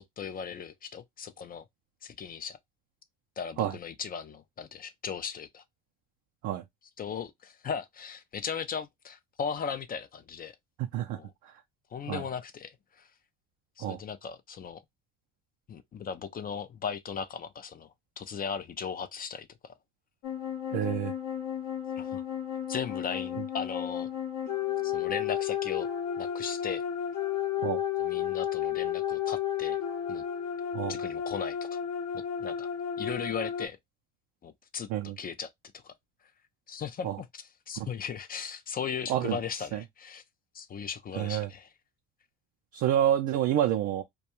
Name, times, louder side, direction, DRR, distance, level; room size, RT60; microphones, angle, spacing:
voice 1, 0.0-1.6 2.0-2.6 3.4-5.6 7.0-10.6 11.1-11.3 11.9-13.1 13.8-14.8 15.7-19.5 22.0-22.2 22.7-24.1 24.8-25.9 26.2-26.8 28.0-29.8 30.1-30.2 30.9-31.7 32.1-32.7 33.0-33.8 34.4-35.9 36.7-40.2 40.5-41.7, left 7 dB, 30° left, 0.4 m, -37 dB
voice 2, 10.8-11.2 12.1-12.2 13.8-14.0 20.7-21.1 27.6-27.8 30.7-30.9 34.9-35.2 37.0-37.2 37.8-37.9 39.1-39.4 39.7-39.8 41.1-41.5 42.7-44.0, right 11 dB, 65° right, 0.5 m, -28 dB
sound 1, 20.2-33.7, left 9 dB, 55° left, 0.7 m, -32 dB
2.3 x 2.3 x 2.8 m
supercardioid pair, 85°, 32 cm